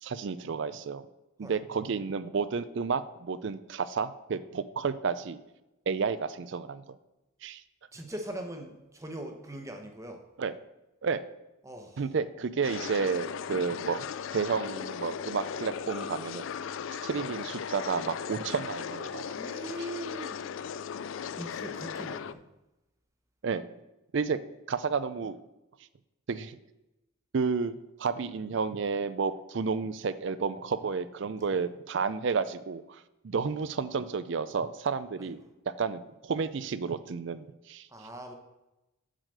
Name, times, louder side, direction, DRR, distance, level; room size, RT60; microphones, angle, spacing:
voice 1, 0.0-1.1 1.4-5.4 5.9-6.8 7.4-7.6 10.4-10.5 11.0-11.2 12.0-14.1 14.3-16.5 17.0-19.4 23.4-23.7 24.1-24.4 24.7-25.4 26.3-26.6 27.3-35.4 35.8-37.9, right 5 dB, 55° right, 14 dB, 0.4 m, -31 dB
voice 2, 7.9-10.2 11.6-12.1 19.4-20.4 21.4-22.4 35.2-35.3 37.9-38.3, right 1 dB, 15° right, 4 dB, 0.9 m, -41 dB
sound 1, 12.6-22.3, left 7 dB, 65° left, 0.3 m, -37 dB
7.6 x 4.9 x 6.5 m, 0.96 s
head